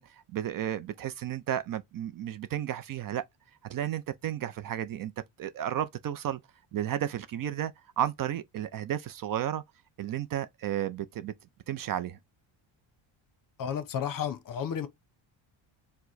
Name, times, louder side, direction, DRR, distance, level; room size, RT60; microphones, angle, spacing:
voice 1, 0.0-3.3 3.6-5.1 5.4-6.4 6.7-9.6 10.0-11.3 11.7-12.2, right 11 dB, 45° right, 0.5 m, -33 dB
voice 2, 13.6-14.9, left 8 dB, 40° left, 0.8 m, -32 dB
4.7 x 2.2 x 3.9 m
cardioid pair, 140°, 49 cm